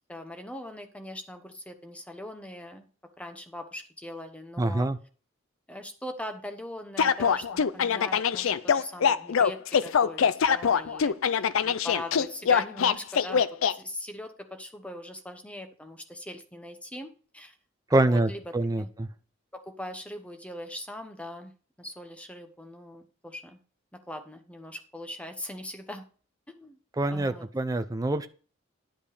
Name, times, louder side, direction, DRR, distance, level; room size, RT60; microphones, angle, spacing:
voice 1, 0.1-2.9 3.2-4.9 5.7-17.5 17.9-18.4 18.7-18.9 19.5-23.6 23.9-26.1 26.5-26.8 27.1-27.5, left 1 dB, 5° left, 7 dB, 0.9 m, -41 dB
voice 2, 4.6-5.0 17.9-19.1 27.0-28.3, right 2 dB, 15° right, 9 dB, 0.5 m, -25 dB
sound 1, 7.0-13.7, left 7 dB, 75° left, 0.4 m, -23 dB
10.5 x 5.2 x 4.9 m, 0.40 s
head